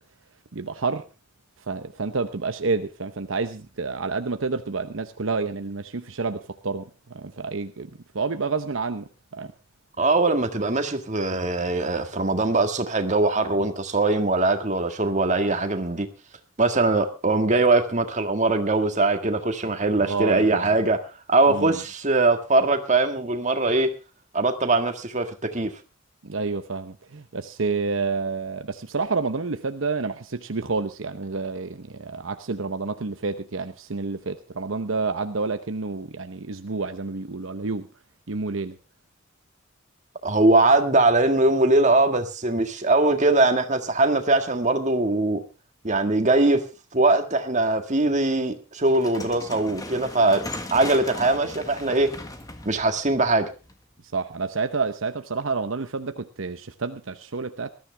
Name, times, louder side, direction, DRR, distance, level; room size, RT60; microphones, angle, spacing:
voice 1, 0.5-1.0 1.7-6.8 7.1-9.5 20.0-20.7 21.5-21.8 26.2-37.9 38.3-38.7 54.1-57.7, right 4 dB, 70° right, 9 dB, 0.9 m, -29 dB
voice 2, 10.0-16.1 16.6-21.0 21.3-23.9 24.3-25.7 40.2-45.4 45.8-46.6 46.9-50.4 50.7-52.1 52.7-53.5, right 2 dB, 35° right, 6 dB, 1.8 m, -21 dB
sound 1, 48.9-54.0, left 2 dB, 15° left, 1.5 m, -38 dB
20.0 x 13.0 x 3.4 m, 0.30 s
head